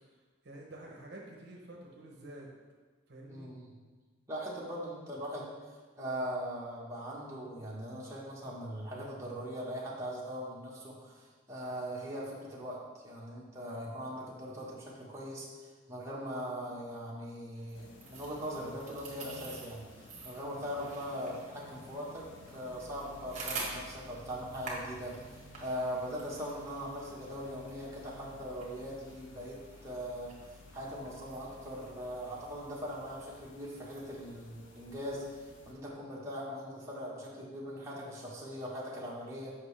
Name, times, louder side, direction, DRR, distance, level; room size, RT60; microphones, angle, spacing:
voice 1, 0.4-2.5 3.1-3.5, right 1 dB, 55° right, -1 dB, 0.9 m, -49 dB
voice 2, 3.3-3.7 4.3-5.5 6.0-15.5 15.9-30.4 30.7-39.5, equal, 15° right, -6 dB, 1.2 m, -40 dB
sound 1, 17.5-35.8, right 3 dB, 35° right, 1.5 m, -49 dB
sound 2, 17.7-35.7, left 2 dB, 70° left, 0.6 m, -54 dB
7.8 x 5.5 x 3.3 m, 1.4 s
head